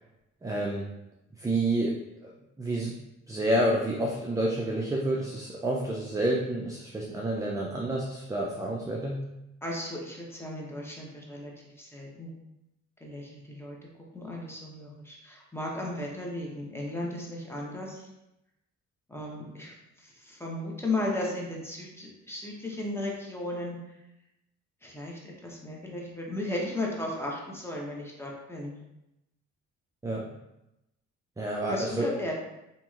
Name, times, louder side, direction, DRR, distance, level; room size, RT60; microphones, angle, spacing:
voice 1, 0.4-0.9 1.4-2.0 2.2-2.3 2.6-3.0 3.3-9.2 30.0-30.2 31.4-32.1, right 1 dB, 10° right, -2 dB, 0.3 m, -29 dB
voice 2, 9.6-11.5 11.8-12.3 13.0-13.8 14.1-18.0 19.1-19.7 20.0-23.8 24.8-28.8 31.7-32.3, left 1 dB, 10° left, -2 dB, 0.7 m, -35 dB
2.9 x 2.8 x 2.4 m, 0.90 s
cardioid pair, 90°, 30 cm